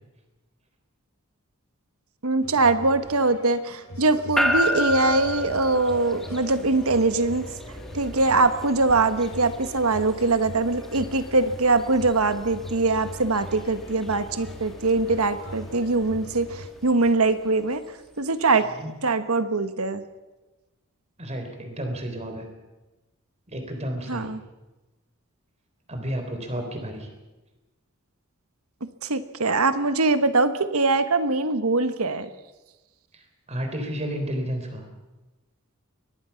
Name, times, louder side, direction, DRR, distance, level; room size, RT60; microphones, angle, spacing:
voice 1, 2.2-7.4 7.9-17.8 18.2-18.7 19.0-20.0 24.1-24.4 29.0-32.3, right 3 dB, 85° right, 11 dB, 1.3 m, -22 dB
sound 1, 2.4-16.7, left 1 dB, 65° left, 3.5 m, -42 dB
sound 2, 4.4-18.6, left 1 dB, ahead, 1.7 m, -34 dB
voice 2, 21.2-22.5 23.5-24.3 25.9-27.1 33.1-33.2 33.5-34.9, equal, 30° right, 5 dB, 3.7 m, -31 dB
23.5 x 19.5 x 5.8 m, 1.1 s
head